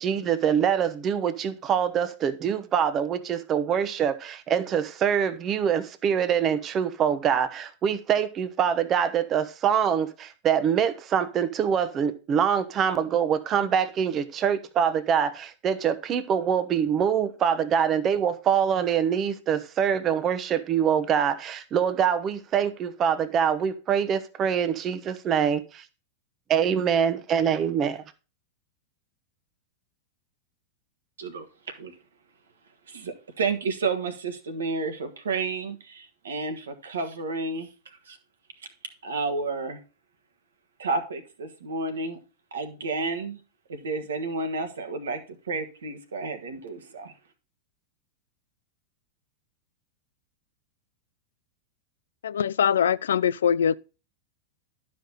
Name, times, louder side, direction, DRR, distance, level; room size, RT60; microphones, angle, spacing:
voice 1, 0.0-25.8 26.5-28.0, right 8 dB, 35° right, 0.9 m, -24 dB
voice 2, 32.9-37.7 38.1-38.2 39.0-39.8 40.8-42.2 42.5-43.4 43.7-45.2 45.5-47.1, right 3 dB, 80° right, 1.5 m, -31 dB
voice 3, 52.2-53.8, left 8 dB, 80° left, 0.3 m, -22 dB
11.5 x 5.3 x 3.9 m
hypercardioid pair, 100°, 0 cm